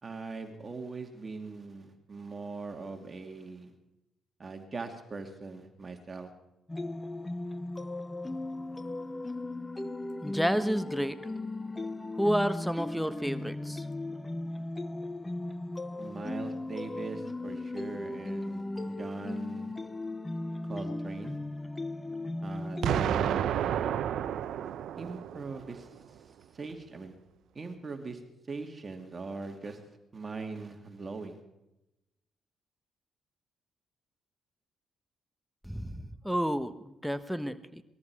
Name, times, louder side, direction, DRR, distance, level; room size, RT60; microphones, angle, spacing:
voice 1, 0.0-3.7 4.4-6.3 16.0-19.7 20.7-21.4 22.4-23.8 25.0-27.1 27.5-28.2 28.5-31.4, right 3 dB, 35° right, 5 dB, 2.6 m, -41 dB
sound 1, 6.7-23.1, left 2 dB, 15° left, 0.8 m, -37 dB
voice 2, 10.2-11.2 12.2-13.8 35.6-37.8, equal, ahead, 11 dB, 1.2 m, -30 dB
Explosion, 22.8-25.8, right 10 dB, 75° right, 0.8 m, -30 dB
20.5 x 13.5 x 4.9 m, 0.92 s
supercardioid pair, 70°, 0 cm